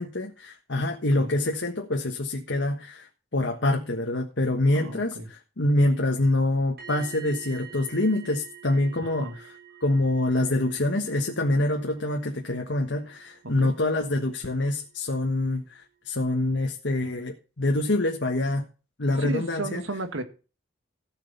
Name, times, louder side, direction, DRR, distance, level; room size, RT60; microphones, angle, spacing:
voice 1, 0.0-9.5 9.8-18.6 19.0-19.8, left 1 dB, 70° left, 1.5 m, -26 dB
voice 2, 4.7-5.3 9.0-9.3 13.6-13.7 19.2-20.2, right 2 dB, 90° right, 1.8 m, -34 dB
sound 1, 6.8-14.7 14.9-15.2, right 10 dB, 50° right, 7.5 m, -48 dB
15.0 x 6.6 x 5.5 m
head